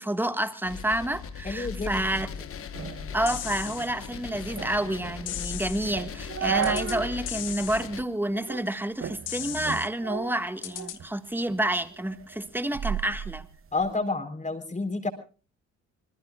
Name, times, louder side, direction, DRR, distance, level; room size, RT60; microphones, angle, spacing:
voice 1, 0.0-2.3 3.1-13.4, right 1 dB, 5° right, 1.6 m, -29 dB
sound 1, 0.6-8.0, left 6 dB, 45° left, 1.2 m, -39 dB
voice 2, 1.4-2.0 13.7-15.1, left 3 dB, 25° left, 4.1 m, -29 dB
sound 2, 2.7-7.2 7.6-7.7 8.3-8.7 9.0-11.1 11.5-13.9, right 7 dB, 45° right, 1.0 m, -35 dB
sound 3, 3.3-3.9 5.3-5.9 6.6-7.0 7.3-7.9 9.3-9.9 10.6-11.0, left 13 dB, 90° left, 1.5 m, -36 dB
27.5 x 20.0 x 2.3 m
cardioid pair, 90°, 30 cm